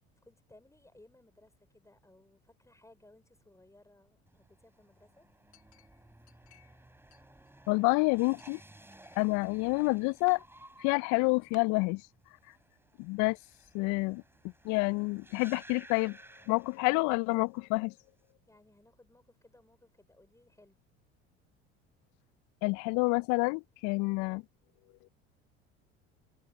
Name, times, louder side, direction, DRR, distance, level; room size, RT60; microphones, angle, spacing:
voice 1, 0.2-5.3 18.5-20.8, left 2 dB, 10° left, 5.4 m, -61 dB
sound 1, 4.3-17.3 17.6-18.2, right 1 dB, 5° right, 5.7 m, -57 dB
Chink clink, 5.5-6.8 7.1-7.9 8.4-9.5 9.8-10.4 11.0-11.1 11.5-11.6, left 14 dB, 85° left, 1.5 m, -60 dB
voice 2, 7.7-8.6 9.2-10.4 10.8-12.0 13.0-13.4 13.7-14.2 14.6-16.2 16.5-17.9 22.6-24.4, left 27 dB, 60° left, 0.5 m, -28 dB
hypercardioid pair, 70°, 33 cm